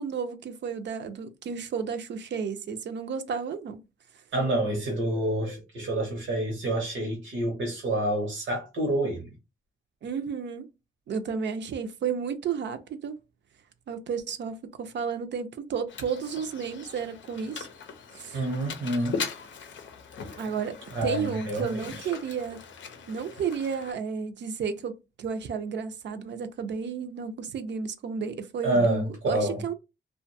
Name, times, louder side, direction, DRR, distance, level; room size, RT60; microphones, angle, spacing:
voice 1, 0.0-3.8 10.0-10.7 11.1-13.1 13.9-17.7 18.1-18.4 20.4-22.6 23.1-29.7, right 6 dB, 65° right, 0.5 m, -32 dB
voice 2, 4.3-9.3 18.3-19.2 20.9-21.8 28.6-29.6, right 1 dB, 90° right, 0.8 m, -28 dB
Mechanisms, 15.9-23.9, left 6 dB, 75° left, 0.5 m, -40 dB
2.4 x 2.2 x 2.6 m
cardioid pair, 60°, 20 cm